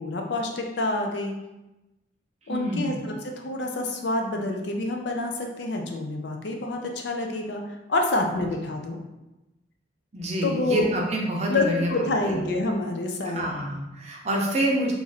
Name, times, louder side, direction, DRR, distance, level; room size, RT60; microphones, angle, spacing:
voice 1, 0.0-1.3 2.5-7.6 7.9-9.0 10.4-10.9 11.5-13.4, left 2 dB, 65° left, 2 dB, 0.5 m, -27 dB
voice 2, 2.5-3.0 8.3-8.4 10.1-12.5 13.2-14.9, right 1 dB, 35° right, -2 dB, 0.7 m, -27 dB
3.0 x 2.5 x 3.9 m, 1.0 s
head